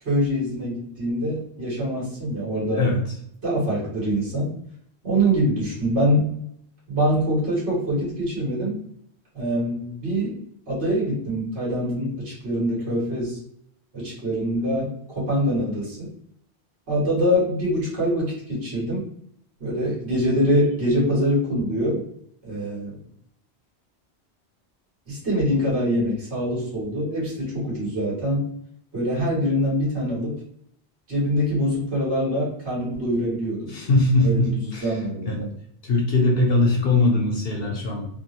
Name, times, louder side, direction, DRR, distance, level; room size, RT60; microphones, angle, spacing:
voice 1, 0.0-2.9 3.4-4.5 5.0-6.3 6.9-8.8 9.3-10.4 10.7-13.4 13.9-16.1 16.9-19.1 19.6-22.0 22.4-22.9 25.1-28.5 28.9-30.4 31.1-33.7 34.2-35.5, equal, 80° right, -6 dB, 1.9 m, -24 dB
voice 2, 33.7-34.9 35.2-35.4 35.8-38.2, left 2 dB, 65° left, -1 dB, 0.9 m, -21 dB
3.8 x 2.1 x 2.8 m, 0.71 s
omnidirectional pair, 1.1 m